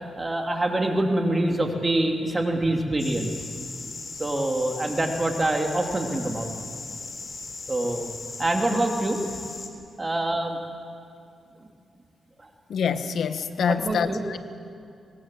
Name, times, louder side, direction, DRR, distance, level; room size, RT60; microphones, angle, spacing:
voice 1, 0.2-3.3 4.2-6.5 7.7-8.1 8.4-9.4 10.0-10.6 12.4-12.5 13.7-14.2, right 1 dB, 25° right, 2 dB, 3.1 m, -25 dB
sound 1, 3.0-9.7, left 4 dB, 45° left, 3.6 m, -38 dB
voice 2, 12.7-14.4, left 6 dB, 75° left, 10 dB, 1.3 m, -26 dB
24.5 x 21.5 x 7.7 m, 2.4 s
cardioid pair, 75°, 0 cm